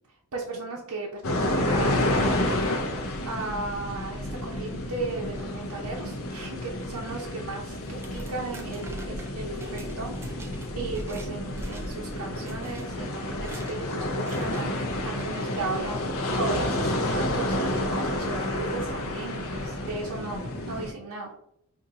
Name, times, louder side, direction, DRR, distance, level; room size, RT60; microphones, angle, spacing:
voice 1, 0.3-2.8 3.2-21.3, right 3 dB, 70° right, -3 dB, 0.6 m, -36 dB
sound 1, 1.2-20.9, left 1 dB, 65° left, 0.6 m, -30 dB
sound 2, 7.8-11.3 11.6-12.1 12.5-12.9 13.4-13.8 14.3-14.7, right 2 dB, 10° right, 0.4 m, -47 dB
5.1 x 2.5 x 2.7 m, 0.76 s
head